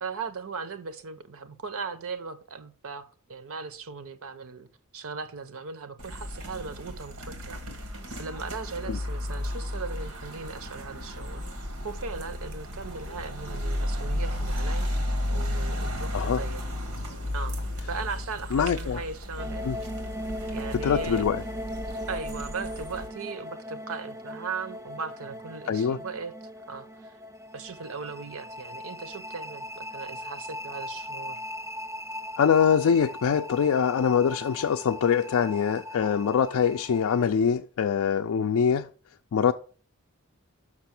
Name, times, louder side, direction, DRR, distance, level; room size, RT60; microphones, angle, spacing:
voice 1, 0.0-4.7 4.9-7.6 8.2-14.9 15.3-16.6 17.3-17.6 17.9-19.7 20.5-21.2 22.1-26.3 26.7-27.2 27.5-31.4, right 4 dB, 70° right, 0.8 m, -38 dB
sound 1, 6.0-23.1, left 1 dB, 90° right, 1.7 m, -33 dB
voice 2, 18.5-19.0 19.6-19.8 20.8-21.4 25.7-26.0 32.4-38.9 39.3-39.5, left 7 dB, 65° left, 0.4 m, -24 dB
sound 2, 19.4-37.3, equal, 15° right, 0.5 m, -39 dB
6.0 x 5.5 x 5.9 m
head